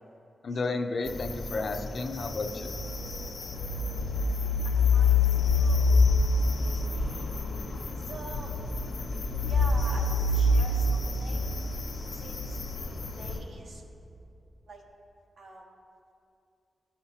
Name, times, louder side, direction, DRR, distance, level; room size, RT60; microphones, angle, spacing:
voice 1, 0.4-2.7, left 3 dB, 60° left, 5 dB, 0.5 m, -32 dB
sound 1, 1.0-13.4, left 3 dB, 85° left, 1.1 m, -27 dB
voice 2, 4.6-7.4 8.0-8.5 9.1-9.2 9.5-11.5 12.1-13.8 14.7-14.8 15.4-15.7, right 2 dB, 80° right, 0 dB, 1.1 m, -46 dB
14.5 x 5.6 x 2.8 m, 2.5 s
wide cardioid pair, 110°, 0 cm